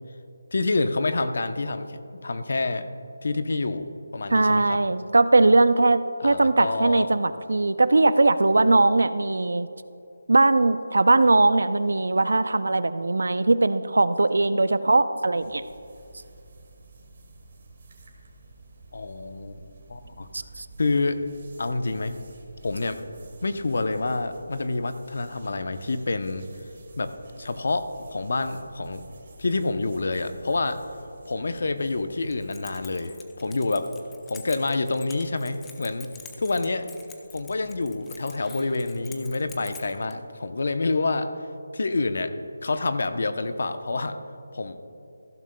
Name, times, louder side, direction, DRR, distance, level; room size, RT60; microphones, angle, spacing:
voice 1, 0.5-2.9 3.2-4.8 6.2-7.1 18.9-19.6 19.9-20.3 20.8-21.2 21.6-22.2 22.6-23.0 23.4-26.4 27.0-27.1 27.4-29.0 29.4-30.8 31.2-33.9 34.3-36.1 36.4-36.9 37.3-41.3 41.7-42.3 42.6-44.2 44.5-44.8, left 3 dB, 60° left, 9 dB, 0.8 m, -27 dB
voice 2, 4.3-9.7 10.3-15.6 20.3-20.7, right 2 dB, 80° right, 13 dB, 0.5 m, -20 dB
sound 1, 15.3-33.1, right 2 dB, 45° right, 2.0 m, -50 dB
Keys jangling, 32.2-40.1, left 6 dB, 5° left, 0.5 m, -48 dB
15.0 x 12.0 x 2.3 m, 2.7 s
figure-of-eight pair, 170°, 0 cm